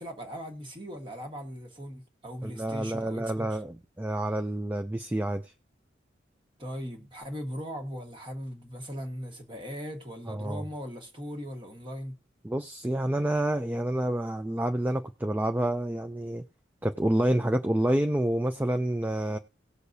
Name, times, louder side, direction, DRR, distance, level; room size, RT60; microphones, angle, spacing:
voice 1, 0.0-3.4 6.6-12.1, equal, 25° right, 1.4 m, -39 dB
voice 2, 2.4-5.5 10.3-10.6 12.4-16.4 16.8-19.4, right 1 dB, 10° right, 0.3 m, -28 dB
18.0 x 6.4 x 2.7 m
head